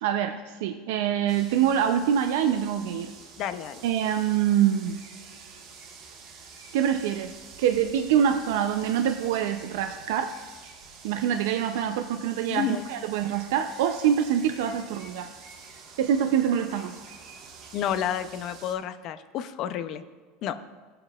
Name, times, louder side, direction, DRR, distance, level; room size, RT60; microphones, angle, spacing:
voice 1, 0.0-3.1 3.8-5.0 6.7-7.3 7.6-10.3 11.0-15.3 16.0-16.9, right 9 dB, 75° right, 6 dB, 0.5 m, -25 dB
sound 1, 1.3-18.7, right 5 dB, 55° right, 1.6 m, -48 dB
voice 2, 3.4-3.8 12.5-12.9 17.7-20.0 20.4-20.6, left 10 dB, 50° left, 11 dB, 0.5 m, -30 dB
15.5 x 7.7 x 2.4 m, 1.4 s
supercardioid pair, 130°, 0 cm